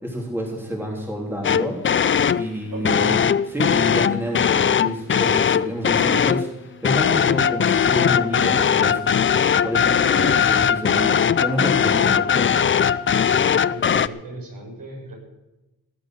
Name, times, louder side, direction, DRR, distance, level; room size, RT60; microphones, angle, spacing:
voice 1, 0.0-1.8 2.3-3.2 3.5-9.2 9.6-12.5, equal, 5° right, -2 dB, 3.2 m, -29 dB
sound 1, 1.4-2.5 2.8-6.5 6.8-14.1, left 7 dB, 35° left, 0.4 m, -19 dB
voice 2, 2.7-3.2 13.6-15.1, right 1 dB, 65° right, -1 dB, 7.6 m, -36 dB
17.5 x 9.3 x 7.6 m, 1.0 s
wide cardioid pair, 125°, 36 cm